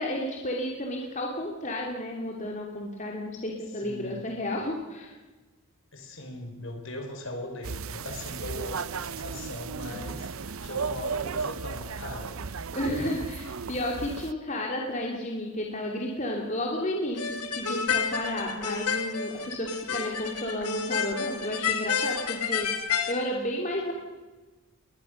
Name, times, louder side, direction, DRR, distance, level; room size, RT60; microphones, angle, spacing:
voice 1, 0.0-5.1 12.7-22.7 23.1-23.9, left 1 dB, 35° left, 0 dB, 3.0 m, -32 dB
voice 2, 3.8-4.3 5.9-12.6, left 1 dB, 60° left, 4 dB, 5.1 m, -39 dB
sound 1, 7.6-14.3, right 5 dB, 70° right, 0.7 m, -35 dB
sound 2, 17.2-23.1, left 6 dB, 90° left, 2.7 m, -30 dB
21.5 x 21.0 x 6.6 m, 1.2 s
head